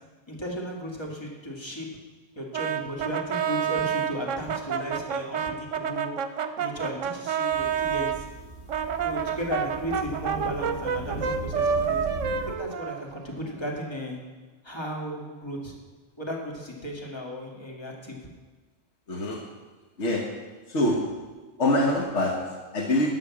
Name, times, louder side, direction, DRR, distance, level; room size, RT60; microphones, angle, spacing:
voice 1, 0.3-1.9 2.4-6.1 6.6-8.3 9.0-12.0 12.5-14.2 14.6-15.8 16.2-18.2, equal, 20° left, -1 dB, 2.1 m, -35 dB
Brass instrument, 2.5-8.2 8.7-13.5, right 7 dB, 75° right, 1.0 m, -29 dB
sound 1, 7.5-12.6, right 2 dB, 20° right, 2.0 m, -39 dB
voice 2, 19.1-19.4 20.0-21.2 21.6-23.1, left 1 dB, 65° left, 0 dB, 1.6 m, -25 dB
12.0 x 6.2 x 7.3 m, 1.3 s
omnidirectional pair, 1.3 m